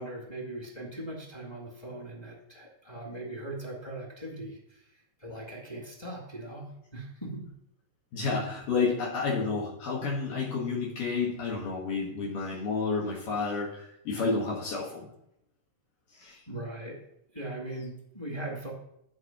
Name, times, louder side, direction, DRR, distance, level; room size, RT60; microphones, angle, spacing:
voice 1, 0.0-4.8 5.2-7.4 16.5-17.0 17.3-18.7, right 1 dB, 10° left, -1 dB, 1.6 m, -40 dB
voice 2, 8.1-15.1 16.1-16.4, left 4 dB, 75° left, -4 dB, 3.3 m, -30 dB
13.0 x 4.7 x 5.9 m, 0.77 s
omnidirectional pair, 3.9 m